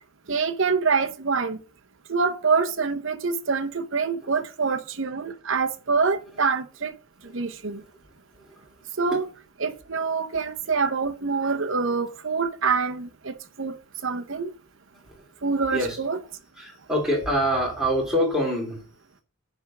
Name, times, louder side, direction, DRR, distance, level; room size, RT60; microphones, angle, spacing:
voice 1, 0.3-1.6 2.1-6.9 7.2-7.8 9.0-9.2 9.6-13.8 14.0-14.5 15.4-16.2, right 5 dB, 60° right, 0.9 m, -25 dB
voice 2, 7.2-7.9 8.3-8.7 9.1-9.2 15.0-15.2 15.7-16.0 16.5-18.8, equal, ahead, 2.7 m, -26 dB
10.0 x 3.5 x 6.1 m
head